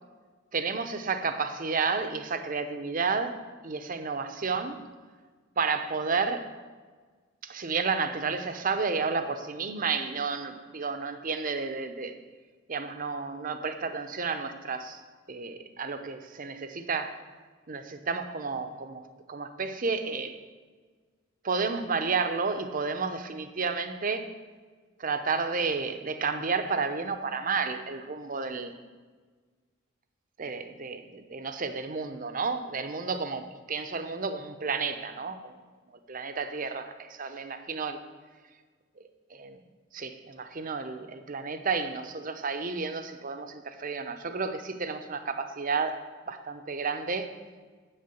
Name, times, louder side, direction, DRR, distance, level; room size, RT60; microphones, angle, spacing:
voice 1, 0.5-3.4 3.6-4.8 5.6-6.5 7.4-12.2 12.7-15.0 15.3-17.2 17.7-19.0 19.3-20.4 21.4-24.3 25.0-28.7 30.4-35.5 36.1-38.0 39.3-39.6 39.9-47.3, right 4 dB, 45° right, 9 dB, 0.7 m, -31 dB
8.8 x 6.6 x 6.9 m, 1.5 s
head